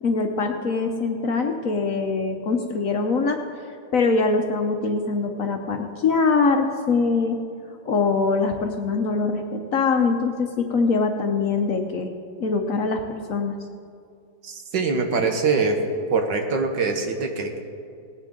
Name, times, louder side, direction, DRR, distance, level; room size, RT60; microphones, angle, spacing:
voice 1, 0.0-3.4 3.9-7.4 7.8-12.1 12.4-13.0 13.3-13.6, left 4 dB, 60° left, 4 dB, 1.0 m, -23 dB
voice 2, 14.4-15.8 16.1-17.6, right 4 dB, 75° right, 4 dB, 1.8 m, -23 dB
18.5 x 9.6 x 3.7 m, 2.3 s
omnidirectional pair, 2.0 m